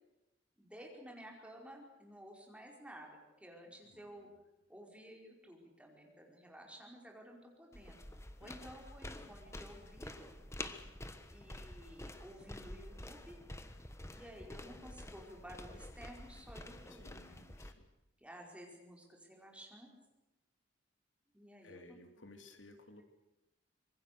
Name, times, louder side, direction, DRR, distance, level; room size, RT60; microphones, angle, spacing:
voice 1, 0.6-4.3 4.7-8.0 8.4-10.3 11.3-13.4 14.1-17.4 18.2-19.9 21.3-21.8, equal, 5° right, 0 dB, 4.9 m, -54 dB
voice 2, 3.9-4.3 8.4-8.7 16.9-17.9 21.6-23.0, left 2 dB, 80° left, 6 dB, 2.9 m, -58 dB
sound 1, 7.7-17.7, left 1 dB, 15° left, 1.3 m, -49 dB
26.0 x 22.5 x 6.8 m, 0.98 s
head